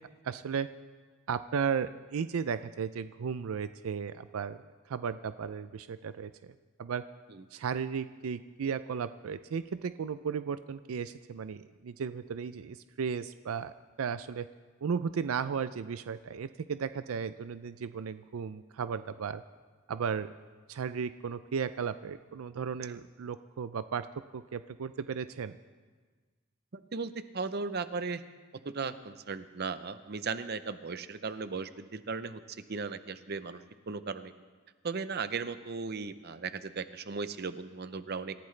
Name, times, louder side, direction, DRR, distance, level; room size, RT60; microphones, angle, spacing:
voice 1, 0.2-0.7 1.3-4.6 4.9-6.5 6.8-7.0 7.5-14.5 14.8-19.4 19.9-20.4 20.7-24.1 24.3-25.6, right 6 dB, 85° right, 13 dB, 0.4 m, -35 dB
voice 2, 26.7-28.2 28.6-32.4 32.7-34.3 34.8-38.3, right 4 dB, 50° right, 12 dB, 0.7 m, -37 dB
26.5 x 14.5 x 3.3 m, 1.4 s
head